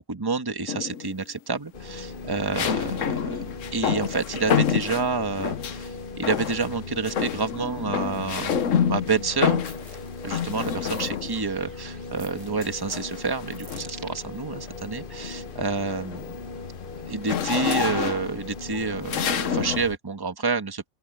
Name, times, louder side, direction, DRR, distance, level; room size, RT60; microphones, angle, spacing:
voice 1, 0.0-3.4 3.7-9.6 10.2-16.2 17.1-20.9, right 4 dB, 15° right, 1.3 m, -29 dB
sound 1, 0.7-1.2 2.5-5.9 6.2-6.8 7.0-11.5 12.6-14.0 14.5-14.8 15.1-19.9, left 8 dB, 60° left, 1.3 m, -28 dB
sound 2, 1.7-20.0, left 3 dB, 40° left, 1.1 m, -39 dB
sound 3, 9.3-14.3, right 5 dB, 60° right, 2.0 m, -49 dB
open air
omnidirectional pair, 1.6 m